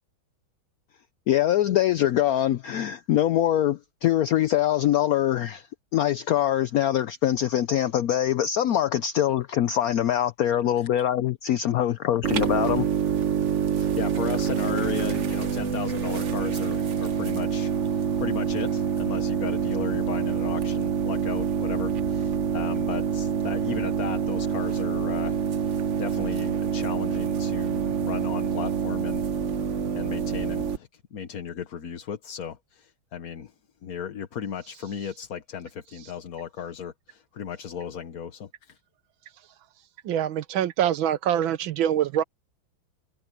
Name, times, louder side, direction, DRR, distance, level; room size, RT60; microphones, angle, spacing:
voice 1, 1.3-5.7 5.9-12.9 13.8-13.9, left 11 dB, 80° left, 0.8 m, -23 dB
sound 1, 12.2-30.8, right 7 dB, 50° right, 0.9 m, -26 dB
voice 2, 14.0-33.5 33.8-38.8, left 8 dB, 50° left, 1.4 m, -36 dB
voice 3, 40.1-42.2, right 10 dB, 80° right, 1.7 m, -24 dB
omnidirectional pair, 2.2 m